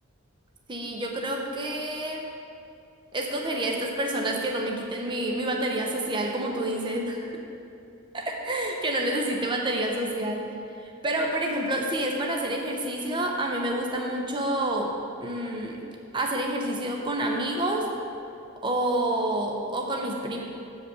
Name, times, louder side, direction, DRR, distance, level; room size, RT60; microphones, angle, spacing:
voice 1, 0.7-2.3 3.1-7.3 8.1-10.5 10.8-14.9 15.2-15.8 16.1-17.9 18.6-20.4, right 1 dB, 25° right, 1 dB, 0.6 m, -28 dB
6.9 x 5.2 x 6.5 m, 2.7 s
head